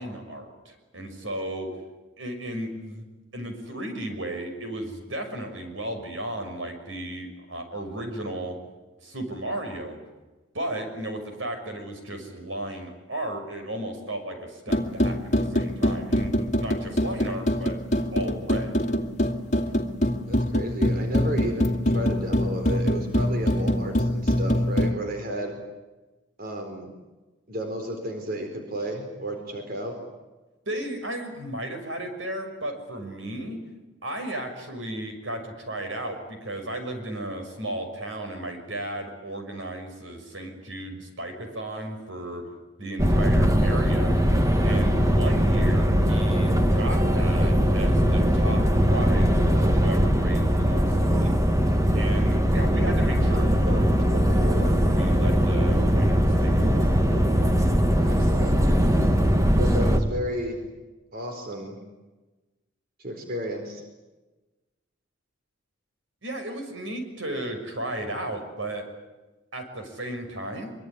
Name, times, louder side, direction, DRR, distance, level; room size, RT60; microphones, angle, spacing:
voice 1, 0.0-1.7 2.2-3.0 3.3-8.6 9.0-10.0 10.5-17.8 18.1-18.8 30.7-33.6 34.0-42.4 42.8-44.1 44.6-48.6 48.9-51.4 51.9-53.9 54.1-57.2 66.2-68.8 69.5-70.7, right 1 dB, 85° right, 6 dB, 6.3 m, -34 dB
sound 1, 14.7-24.9, equal, 40° left, 2.2 m, -24 dB
voice 2, 20.3-25.5 26.4-26.9 27.5-30.0 57.9-58.5 59.5-60.6 61.1-61.8 63.0-63.8, equal, 50° right, 4 dB, 4.3 m, -32 dB
sound 2, 43.0-60.0, equal, 15° right, 1.9 m, -21 dB
24.5 x 24.0 x 9.9 m, 1.2 s
head